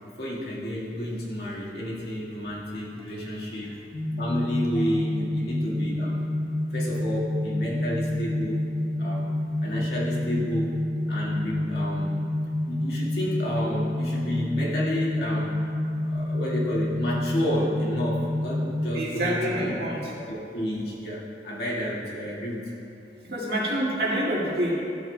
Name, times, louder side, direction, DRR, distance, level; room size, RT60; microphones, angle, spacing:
voice 1, 0.1-3.8 4.2-6.2 6.7-8.6 9.0-9.4 9.6-10.8 11.1-12.3 12.7-15.6 16.1-19.7 20.2-22.7, equal, 65° left, -6 dB, 1.7 m, -31 dB
sound 1, 3.9-18.9, left 1 dB, 25° left, 1.9 m, -28 dB
voice 2, 18.9-20.0 23.2-24.8, right 1 dB, 65° right, -5 dB, 1.8 m, -26 dB
13.0 x 7.3 x 2.2 m, 2.6 s
head